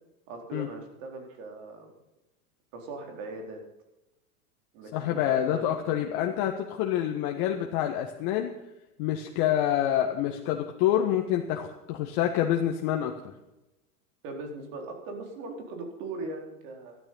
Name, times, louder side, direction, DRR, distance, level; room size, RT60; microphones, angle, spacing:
voice 1, 0.3-1.9 2.7-3.6 4.7-6.0 14.2-17.0, right 2 dB, 55° right, 3 dB, 4.5 m, -40 dB
voice 2, 4.9-8.5 9.0-13.3, left 11 dB, 50° left, 2 dB, 1.6 m, -27 dB
13.5 x 12.0 x 5.6 m, 0.96 s
hypercardioid pair, 110°, 47 cm